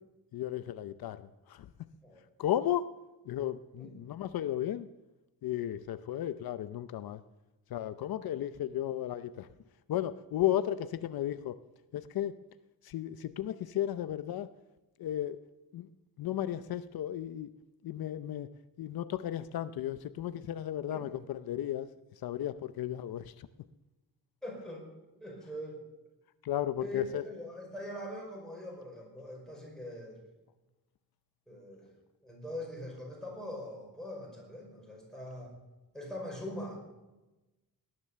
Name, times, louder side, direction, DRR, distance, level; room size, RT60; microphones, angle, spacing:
voice 1, 0.3-1.7 2.4-2.9 3.3-4.9 5.4-7.2 7.7-9.5 9.9-11.6 11.9-12.4 12.8-14.5 15.0-15.4 15.7-15.9 16.2-17.5 17.8-18.5 18.8-21.9 22.2-23.5 26.4-27.2, left 12 dB, 75° left, 12 dB, 0.7 m, -34 dB
voice 2, 24.4-24.8 25.2-25.8 26.8-30.2 31.5-31.9 32.2-35.5 35.9-36.8, left 1 dB, ahead, -2 dB, 5.2 m, -42 dB
18.0 x 10.5 x 6.8 m, 1.1 s
wide cardioid pair, 170°, 36 cm